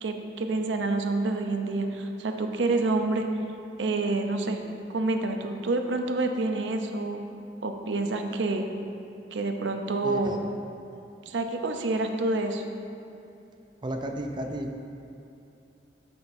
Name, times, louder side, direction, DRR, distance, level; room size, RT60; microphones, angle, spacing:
voice 1, 0.0-3.3 3.8-4.6 4.9-7.2 7.6-8.6 9.3-10.4 11.3-12.6, right 2 dB, 85° right, 5 dB, 0.6 m, -28 dB
voice 2, 10.0-10.4 13.8-14.7, right 1 dB, 25° right, 3 dB, 0.5 m, -33 dB
13.5 x 6.0 x 2.6 m, 2.7 s
head